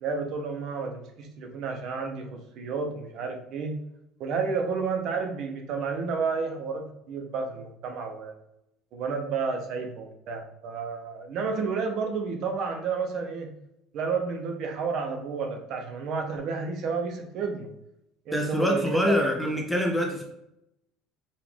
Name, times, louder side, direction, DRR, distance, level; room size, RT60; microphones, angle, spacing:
voice 1, 0.0-3.8 4.2-8.3 8.9-13.5 13.9-17.7 18.3-19.2, right 5 dB, 40° right, 4 dB, 0.7 m, -31 dB
voice 2, 18.3-20.2, left 1 dB, ahead, 1 dB, 0.5 m, -25 dB
4.9 x 2.5 x 3.5 m, 0.83 s
cardioid pair, 175°, 0 cm